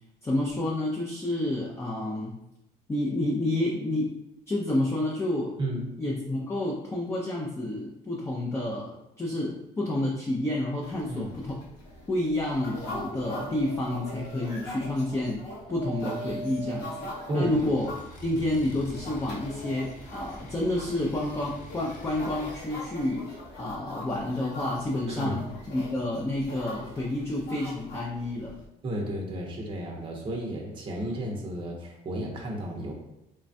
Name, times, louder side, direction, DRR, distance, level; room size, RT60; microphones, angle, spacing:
voice 1, 0.2-2.3 2.9-4.1 4.5-5.5 6.0-11.6 12.1-17.9 18.2-25.4 25.7-28.6, left 1 dB, 15° left, -2 dB, 0.4 m, -29 dB
voice 2, 5.6-6.0 11.1-11.3 17.3-17.7 25.1-25.4 28.8-32.9, equal, 30° right, 0 dB, 0.6 m, -32 dB
sound 1, 10.8-28.6, left 1 dB, 85° left, 0.8 m, -43 dB
Dog, 12.3-17.9, right 5 dB, 90° right, 0.4 m, -43 dB
sound 2, 17.4-22.6, equal, 55° left, 0.6 m, -46 dB
3.2 x 2.2 x 2.6 m, 0.88 s
cardioid pair, 110°, 17 cm